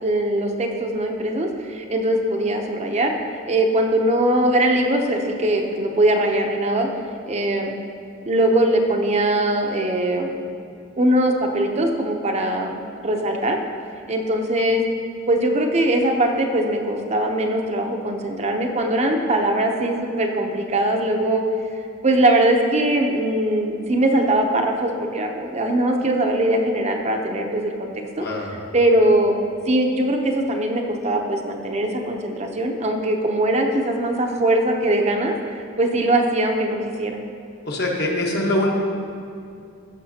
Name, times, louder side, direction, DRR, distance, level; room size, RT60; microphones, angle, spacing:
voice 1, 0.0-3.1 3.5-6.9 7.3-7.7 8.2-10.3 11.0-13.6 14.1-14.8 15.3-21.4 22.0-27.9 28.2-28.3 28.7-29.3 29.7-35.4 35.8-37.2, right 1 dB, 35° right, 3 dB, 0.6 m, -21 dB
voice 2, 28.2-28.5 37.6-38.7, left 1 dB, 55° left, -2 dB, 1.3 m, -23 dB
14.5 x 6.0 x 2.8 m, 2.5 s
head